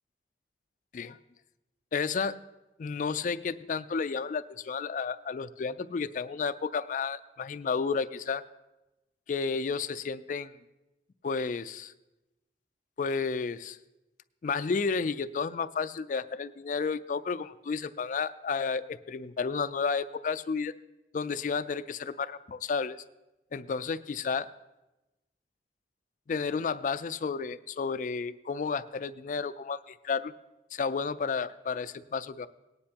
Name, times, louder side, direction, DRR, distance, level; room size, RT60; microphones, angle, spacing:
voice 1, 1.9-2.4 2.8-8.4 9.3-10.5 11.2-11.9 13.0-13.8 14.4-20.7 21.1-23.0 23.5-24.5 26.3-30.3 30.7-32.5, left 5 dB, 45° left, 13 dB, 0.3 m, -32 dB
19.0 x 9.6 x 2.9 m, 1.0 s
head